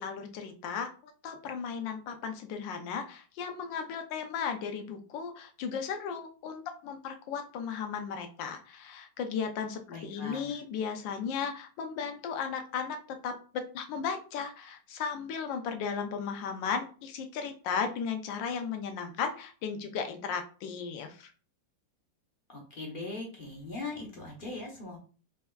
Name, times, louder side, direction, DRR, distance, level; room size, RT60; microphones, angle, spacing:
voice 1, 0.0-21.3, left 6 dB, 80° left, 6 dB, 1.3 m, -35 dB
voice 2, 9.9-10.6 22.5-25.0, left 3 dB, 45° left, -1 dB, 0.7 m, -40 dB
4.3 x 3.3 x 2.2 m, 0.38 s
omnidirectional pair, 2.0 m